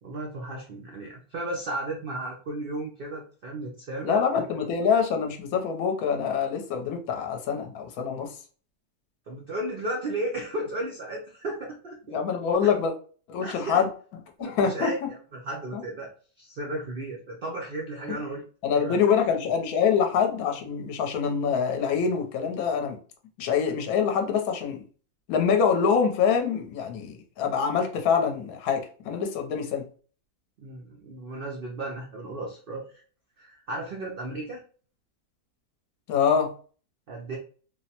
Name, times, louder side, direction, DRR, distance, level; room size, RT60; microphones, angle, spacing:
voice 1, 0.0-4.4 9.3-12.2 12.6-12.7 13.4-13.8 14.4-16.1 16.4-18.4 18.7-19.0 23.6-23.7 30.6-33.0 33.4-34.6 37.1-37.4, right 1 dB, 70° right, 0.5 m, -34 dB
voice 2, 4.0-8.3 12.1-12.9 13.3-13.9 14.4-15.1 15.7-15.8 18.1-18.2 18.6-23.0 23.4-24.8 25.3-29.9 36.1-36.5, left 6 dB, 70° left, 1.0 m, -25 dB
3.2 x 2.0 x 2.8 m
omnidirectional pair, 1.7 m